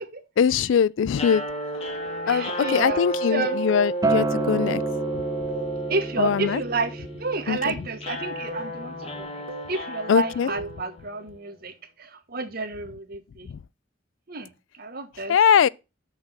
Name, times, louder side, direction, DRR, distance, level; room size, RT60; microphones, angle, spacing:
voice 1, 0.4-1.4 2.3-4.8 6.2-6.6 7.5-7.7 10.1-10.5 15.3-15.7, left 7 dB, 75° left, 0.3 m, -21 dB
sound 1, 1.1-11.4, right 1 dB, 30° left, 1.6 m, -32 dB
voice 2, 2.3-3.0 3.3-3.6 5.9-9.4 9.7-11.7 12.0-13.5 14.3-14.5 14.8-15.4, right 3 dB, 50° right, 1.3 m, -30 dB
Acoustic guitar, 4.0-9.2, right 3 dB, 20° right, 0.4 m, -31 dB
sound 2, 5.5-5.7 6.5-6.7 7.5-7.7 8.5-8.7 9.5-9.7 10.5-10.8, right 3 dB, 80° right, 1.4 m, -37 dB
6.6 x 5.9 x 5.8 m
head